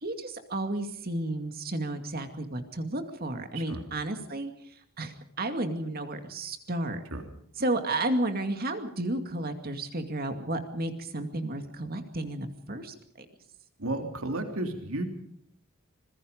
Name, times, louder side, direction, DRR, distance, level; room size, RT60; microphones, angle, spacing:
voice 1, 0.0-4.5 5.0-7.0 7.6-13.3, right 1 dB, 45° right, 7 dB, 2.3 m, -32 dB
voice 2, 13.8-15.1, right 2 dB, 75° right, 5 dB, 3.2 m, -32 dB
26.0 x 21.5 x 5.2 m, 0.68 s
head